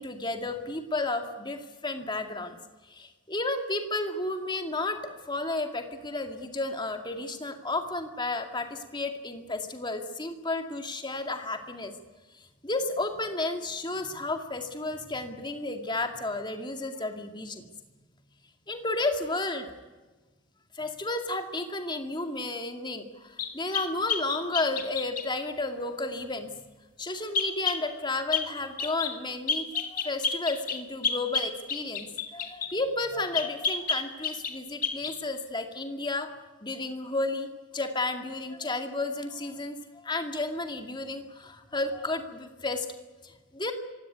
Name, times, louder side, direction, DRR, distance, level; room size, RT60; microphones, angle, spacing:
voice 1, 0.0-2.6 2.9-11.9 12.6-17.6 18.7-19.7 20.7-26.5 27.0-36.3 36.6-37.5 37.7-42.9 43.2-43.7, left 2 dB, 20° left, 6 dB, 2.1 m, -32 dB
sound 1, 23.4-25.3 27.3-27.8 28.3-28.5 28.8-29.2 29.5-32.7 33.3-34.6 34.8-35.1, left 5 dB, 40° left, 2.4 m, -30 dB
25.5 x 17.0 x 9.4 m, 1.2 s
head